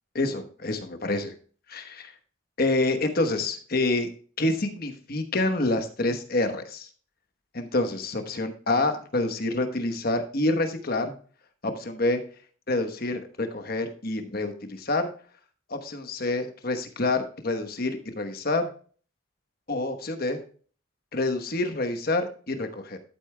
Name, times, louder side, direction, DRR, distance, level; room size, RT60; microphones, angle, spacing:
voice 1, 0.1-1.3 1.7-2.1 2.6-4.1 4.4-6.9 7.5-11.1 11.6-12.2 12.7-15.1 15.7-18.7 19.7-20.4 21.1-23.0, left 2 dB, 45° left, 7 dB, 1.1 m, -27 dB
11.5 x 8.4 x 2.2 m, 0.42 s
head